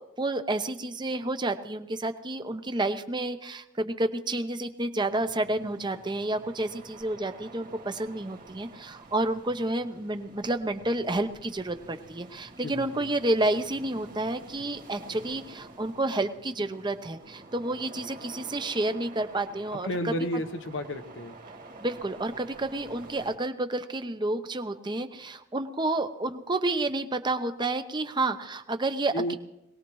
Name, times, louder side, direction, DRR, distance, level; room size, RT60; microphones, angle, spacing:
voice 1, 0.0-20.1 21.8-29.3, right 2 dB, 25° right, 8 dB, 0.8 m, -30 dB
sound 1, 5.1-23.4, right 2 dB, 45° right, 2.2 m, -49 dB
voice 2, 12.6-13.1 19.8-21.3 29.1-29.3, equal, 85° left, 7 dB, 1.1 m, -32 dB
22.5 x 19.0 x 3.1 m, 0.90 s
head